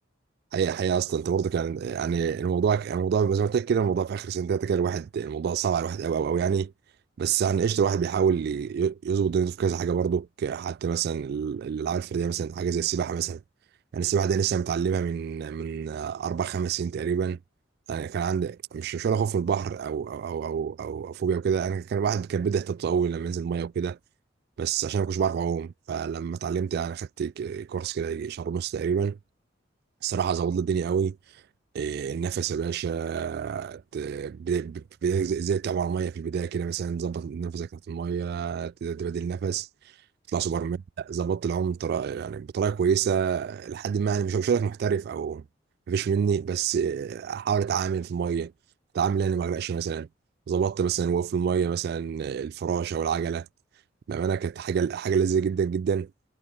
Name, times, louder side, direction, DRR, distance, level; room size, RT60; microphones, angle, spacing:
voice 1, 0.5-6.7 7.2-13.4 13.9-17.4 17.9-24.0 24.6-29.2 30.0-31.2 31.7-39.7 40.3-45.4 45.9-48.5 48.9-50.1 50.5-53.5 54.1-56.1, right 7 dB, 55° right, 0.3 m, -27 dB
head